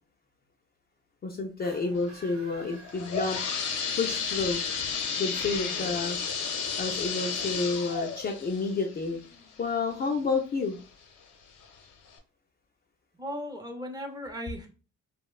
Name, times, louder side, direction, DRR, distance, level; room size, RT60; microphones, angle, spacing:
voice 1, 1.2-3.4 3.9-4.6 5.2-6.2 6.8-9.2 9.6-10.8, left 4 dB, 30° left, 1 dB, 0.4 m, -30 dB
sound 1, 1.5-3.8, right 4 dB, 70° right, 0.8 m, -52 dB
sound 2, 2.7-10.3 10.8-10.9 11.6-11.7 12.1-12.2, left 6 dB, 80° left, 0.7 m, -33 dB
voice 2, 5.6-5.9 13.1-14.7, equal, 15° right, 3 dB, 0.6 m, -38 dB
3.0 x 2.0 x 2.3 m, 0.35 s
cardioid pair, 90°, 30 cm